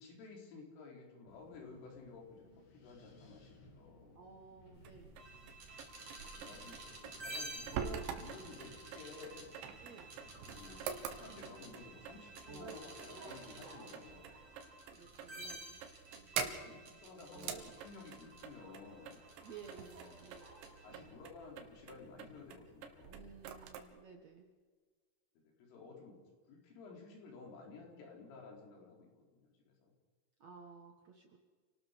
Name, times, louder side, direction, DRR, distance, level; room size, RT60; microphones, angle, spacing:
voice 1, 0.0-4.2 6.0-9.5 10.4-10.8 11.1-14.4 15.3-15.4 16.6-19.2 20.0-20.3 20.8-23.3 25.4-26.2 26.5-29.9, left 4 dB, 85° left, 0 dB, 6.5 m, -54 dB
Wind, 1.3-12.0, left 2 dB, 50° left, 4.5 m, -63 dB
voice 2, 4.1-5.1 8.4-8.6 9.8-10.1 14.8-15.8 16.1-16.3 19.4-20.5 20.9-21.1 23.1-24.5 30.4-31.4, right 5 dB, 90° right, 3 dB, 1.5 m, -55 dB
sound 1, 4.7-23.8, right 7 dB, 75° right, 3.7 m, -47 dB
sound 2, 5.2-21.1, right 2 dB, 35° right, 3.9 m, -51 dB
28.5 x 18.5 x 5.2 m, 1.5 s
omnidirectional pair, 5.6 m